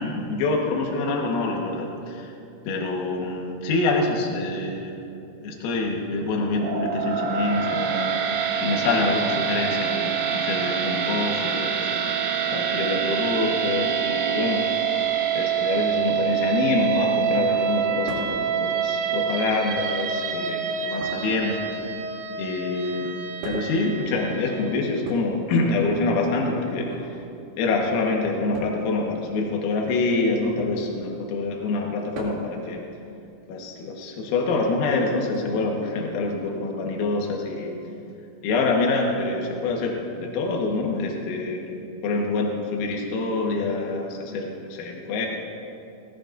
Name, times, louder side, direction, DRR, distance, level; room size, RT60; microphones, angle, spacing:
voice 1, 0.0-2.3 2.7-4.9 5.4-8.2 8.6-12.0 12.5-14.6 15.4-21.9 22.4-23.1 23.4-26.9 27.6-32.8 33.5-37.7 38.4-45.3, left 3 dB, 85° left, 0 dB, 4.1 m, -26 dB
sound 1, 6.6-24.8, right 7 dB, 85° right, 2.2 m, -26 dB
sound 2, 18.1-18.4 19.5-20.0 21.0-22.1 23.4-23.9 25.0-26.1 26.7-27.1 28.5-28.8 30.4-30.8 32.1-32.6 34.0-34.1 35.3-35.4, right 3 dB, 55° right, 4.4 m, -37 dB
19.0 x 18.5 x 2.6 m, 2.7 s
omnidirectional pair, 5.9 m